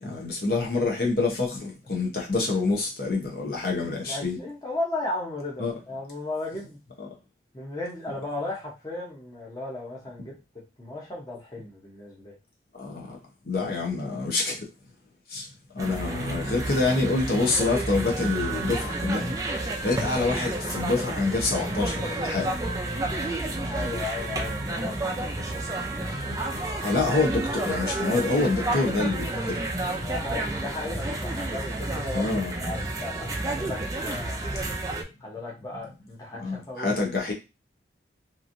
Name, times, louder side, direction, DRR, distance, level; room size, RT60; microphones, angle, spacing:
voice 1, 0.0-4.4 5.6-5.7 7.0-7.1 12.7-13.2 13.4-14.7 15.3-15.5 15.7-19.4 19.8-22.6 26.3-26.4 26.7-29.6 32.1-32.5 36.4-37.3, left 3 dB, 60° left, 0.8 m, -26 dB
voice 2, 4.0-6.8 7.5-10.3 10.8-12.4 23.0-25.8 26.4-26.7 30.0-34.6 35.2-37.0, left 2 dB, 20° left, 0.8 m, -36 dB
sound 1, 15.8-35.0, right 2 dB, 20° right, 0.4 m, -30 dB
3.0 x 2.5 x 2.6 m
head